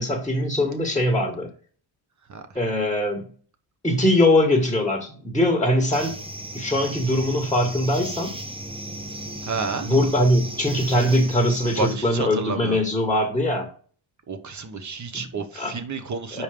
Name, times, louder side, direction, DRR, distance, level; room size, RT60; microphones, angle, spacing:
voice 1, 0.0-1.5 2.5-3.2 3.8-6.2 6.5-8.3 9.8-13.7 15.1-15.3 15.5-15.8 16.3-16.4, left 1 dB, 10° left, 1 dB, 1.6 m, -21 dB
sound 1, 5.9-11.9, right 1 dB, 10° right, 0.8 m, -36 dB
voice 2, 9.5-9.9 11.8-12.8 14.3-16.4, right 4 dB, 40° right, 9 dB, 1.2 m, -30 dB
5.1 x 4.6 x 5.0 m, 0.43 s
cardioid pair, 100°, 43 cm